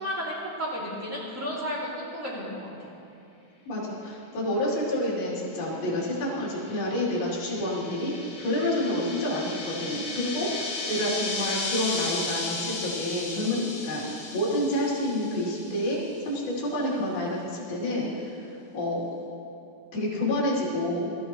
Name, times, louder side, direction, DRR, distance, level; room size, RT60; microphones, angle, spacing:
voice 1, 0.0-2.7, equal, 20° right, -6 dB, 2.4 m, -33 dB
voice 2, 3.7-8.1 8.4-16.0 16.2-18.5 18.7-19.1 19.9-21.1, left 1 dB, 60° left, -6 dB, 5.1 m, -28 dB
sound 1, 6.2-16.0, left 3 dB, 45° left, 2.5 m, -35 dB
22.0 x 14.5 x 3.1 m, 2.9 s
omnidirectional pair, 4.9 m